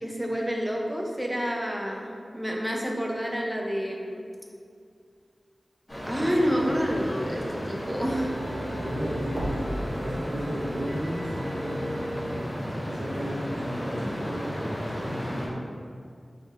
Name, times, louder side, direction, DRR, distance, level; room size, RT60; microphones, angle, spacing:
voice 1, 0.0-4.2 6.1-8.4, equal, 5° right, 0 dB, 0.5 m, -28 dB
sound 1, 5.9-15.5, equal, 15° left, 1.2 m, -34 dB
sound 2, 8.0-12.4 12.8-12.9, right 1 dB, 85° right, 0.6 m, -36 dB
voice 2, 8.8-15.6, equal, 20° right, -8 dB, 1.3 m, -34 dB
3.6 x 2.5 x 4.1 m, 2.3 s
wide cardioid pair, 75°, 0 cm